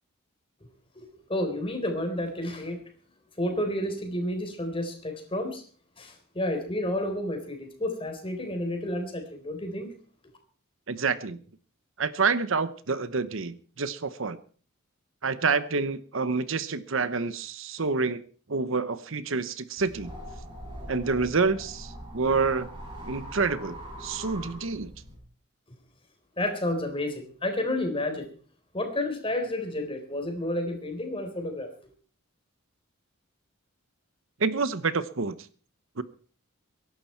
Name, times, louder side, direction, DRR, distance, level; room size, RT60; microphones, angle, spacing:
voice 1, 1.0-2.8 3.4-5.6 6.0-9.9 26.4-28.3 28.7-31.7, left 1 dB, 25° left, 5 dB, 3.9 m, -30 dB
voice 2, 10.9-11.4 12.0-14.4 15.2-18.2 18.5-20.1 20.9-22.7 23.1-24.9 34.4-35.4 36.0-36.1, right 4 dB, 65° right, 14 dB, 0.9 m, -28 dB
sound 1, 19.8-25.2, equal, 25° right, 6.9 m, -42 dB
22.5 x 11.5 x 4.5 m, 0.42 s
head